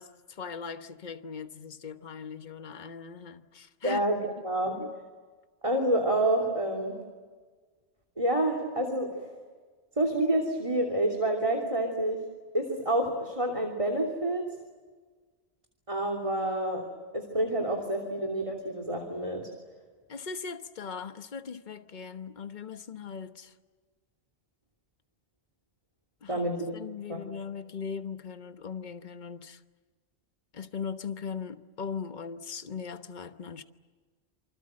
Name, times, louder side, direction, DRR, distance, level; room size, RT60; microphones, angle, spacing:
voice 1, 0.0-4.0 4.8-4.9 20.1-23.5 26.2-29.6 30.5-33.6, left 6 dB, 45° left, 1.2 m, -39 dB
voice 2, 3.8-4.2 4.4-4.8 5.6-7.0 8.2-9.3 10.0-12.2 12.5-14.4 15.9-16.8 17.1-19.5 26.3-26.8 27.1-27.2, right 1 dB, 30° right, 3.1 m, -28 dB
28.0 x 25.5 x 7.7 m
omnidirectional pair, 1.1 m